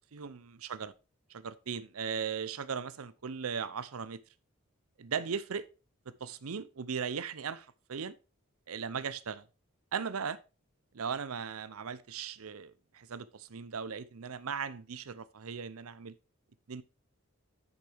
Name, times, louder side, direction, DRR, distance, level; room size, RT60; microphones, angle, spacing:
voice 1, 0.1-0.9 1.3-4.2 5.0-5.7 6.1-8.1 8.7-9.5 9.9-10.4 10.9-16.1 16.7-16.8, right 6 dB, 90° right, 0.6 m, -38 dB
8.6 x 6.6 x 3.4 m
head